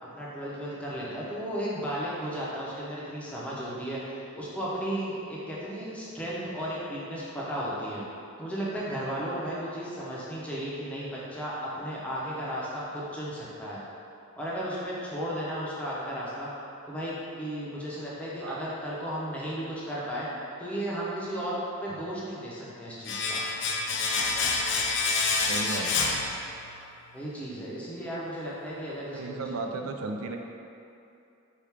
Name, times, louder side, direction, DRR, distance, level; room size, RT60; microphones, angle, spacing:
voice 1, 0.0-8.0 8.4-13.8 14.4-16.5 16.9-20.3 20.6-23.4 27.1-29.6, equal, 5° left, -7 dB, 0.6 m, -34 dB
Domestic sounds home sounds, 23.0-26.9 27.1-27.3, left 4 dB, 60° left, 0.4 m, -28 dB
voice 2, 25.5-26.2 29.1-30.4, right 3 dB, 75° right, 3 dB, 0.4 m, -35 dB
4.3 x 2.4 x 3.4 m, 2.7 s
head